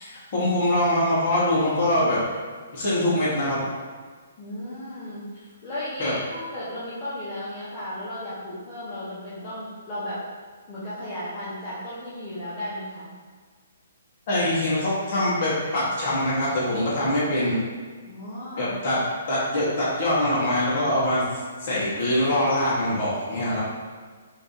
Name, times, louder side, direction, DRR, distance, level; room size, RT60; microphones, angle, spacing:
voice 1, 0.1-2.2 2.7-3.6 6.0-6.1 14.3-17.6 18.6-19.0 19.3-21.3 21.6-23.6, left 1 dB, 30° left, -8 dB, 1.2 m, -23 dB
voice 2, 4.4-10.2 10.7-13.1 18.0-18.7, left 1 dB, 15° left, -13 dB, 0.7 m, -35 dB
5.0 x 2.6 x 3.2 m, 1.6 s
hypercardioid pair, 175°, 0 cm